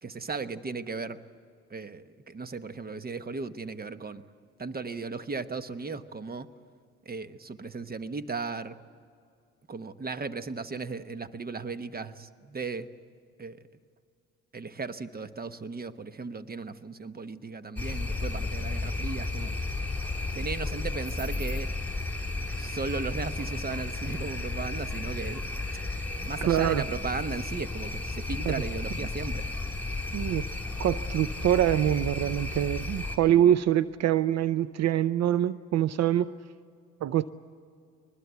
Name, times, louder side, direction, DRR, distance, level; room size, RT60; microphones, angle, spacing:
voice 1, 0.0-1.2 1.7-4.2 4.6-6.5 7.0-8.8 9.7-12.9 13.4-13.6 14.5-19.5 20.3-21.7 22.6-25.4 26.2-29.4, right 4 dB, 30° right, 1.1 m, -36 dB
sound 1, 17.8-33.2, left 2 dB, 5° left, 4.3 m, -33 dB
voice 2, 26.4-26.8 28.5-28.6 30.1-30.4 30.8-36.3 37.0-37.3, right 11 dB, 55° right, 0.6 m, -24 dB
22.5 x 20.5 x 8.2 m
supercardioid pair, 65°, 31 cm